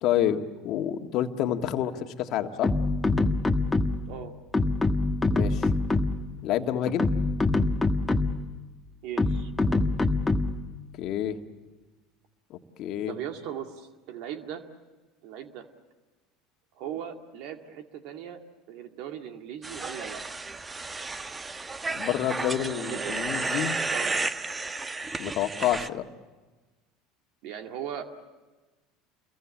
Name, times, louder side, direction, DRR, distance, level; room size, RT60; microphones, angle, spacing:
voice 1, 0.0-2.7 5.3-5.7 6.4-7.1 11.0-11.4 12.8-13.1 21.9-23.8 25.2-26.0, left 11 dB, 55° left, 6 dB, 1.7 m, -28 dB
sound 1, 2.6-4.2 4.5-6.3 6.9-8.5 9.2-10.7, left 2 dB, 15° left, 1.4 m, -25 dB
voice 2, 9.0-9.8 13.1-14.7 15.2-15.7 16.7-20.2 22.6-23.2 23.9-24.2 27.4-28.0, right 9 dB, 65° right, 5 dB, 2.2 m, -39 dB
sound 2, 19.6-25.9, right 3 dB, 20° right, 1.0 m, -32 dB
29.0 x 22.5 x 7.2 m, 1.2 s
hypercardioid pair, 80°, 0 cm